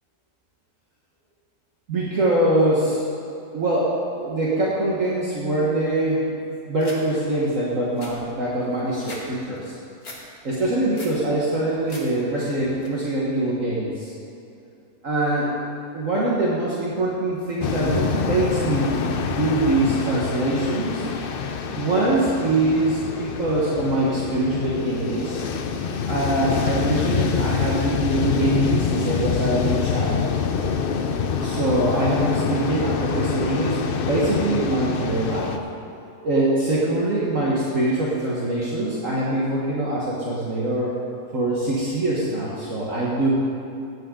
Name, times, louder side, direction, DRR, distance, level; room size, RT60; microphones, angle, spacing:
voice 1, 1.9-3.0 3.5-6.3 6.7-9.7 10.4-14.1 15.0-15.5 15.9-21.1 21.7-25.4 26.1-30.2 31.4-35.6 36.2-40.9 41.3-43.4, right 1 dB, 55° right, -6 dB, 1.8 m, -23 dB
sound 1, 6.8-7.0 7.5-7.6 7.8-9.2 9.6-10.2 10.6-11.2 11.6-12.0 12.4-12.9, left 2 dB, 40° left, 2.1 m, -40 dB
sound 2, 17.6-35.6, left 6 dB, 65° left, 0.5 m, -26 dB
15.5 x 10.0 x 3.8 m, 2.7 s
omnidirectional pair, 1.7 m